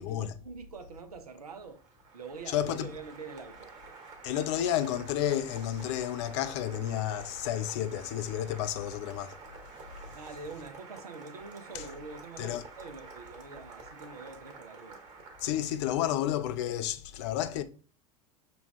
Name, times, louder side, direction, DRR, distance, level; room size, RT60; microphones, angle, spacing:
voice 1, 0.0-1.8 2.1-3.7 10.1-15.0 15.5-16.2, right 4 dB, 75° right, 0.6 m, -45 dB
Applause, 1.6-16.0, right 4 dB, 35° right, 1.3 m, -49 dB
voice 2, 2.5-2.9 4.2-9.3 12.4-12.6 15.4-17.6, left 11 dB, 50° left, 0.5 m, -31 dB
5.9 x 2.3 x 3.5 m
figure-of-eight pair, 80°, 20 cm